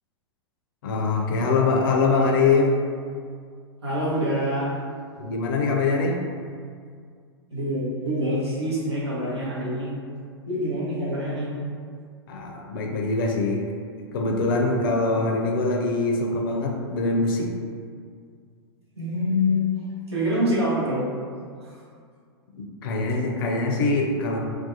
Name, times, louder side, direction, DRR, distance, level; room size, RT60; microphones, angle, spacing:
voice 1, 0.8-2.7 5.2-6.2 12.3-13.8 14.1-17.5 22.6-24.4, left 3 dB, 55° left, 1 dB, 0.4 m, -23 dB
voice 2, 3.8-4.7 7.5-9.9 10.5-11.5 19.0-19.6 20.1-21.0 21.6-21.8, equal, 80° right, -7 dB, 0.8 m, -25 dB
2.5 x 2.2 x 2.6 m, 2.1 s
figure-of-eight pair, 100°, 14 cm